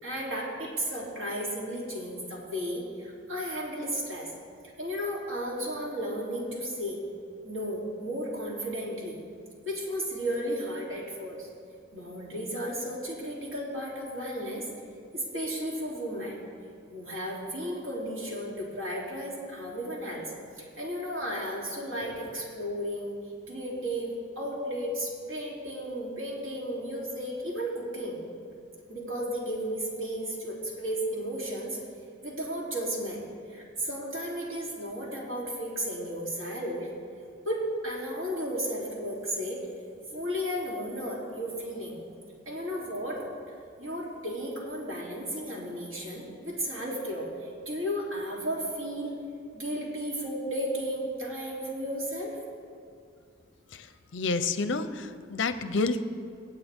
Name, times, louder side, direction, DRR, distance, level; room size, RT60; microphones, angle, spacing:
voice 1, 0.0-4.3 4.8-7.0 7.4-9.2 9.6-11.5 11.9-14.7 15.1-16.4 16.9-20.3 20.6-23.1 23.5-28.2 28.9-31.8 32.2-36.9 37.4-39.6 40.1-42.0 42.4-43.2 43.8-49.2 49.5-52.4, equal, 85° right, -4 dB, 3.3 m, -34 dB
voice 2, 53.7-56.0, left 3 dB, 65° left, 11 dB, 0.7 m, -29 dB
25.0 x 8.4 x 3.6 m, 2.3 s
head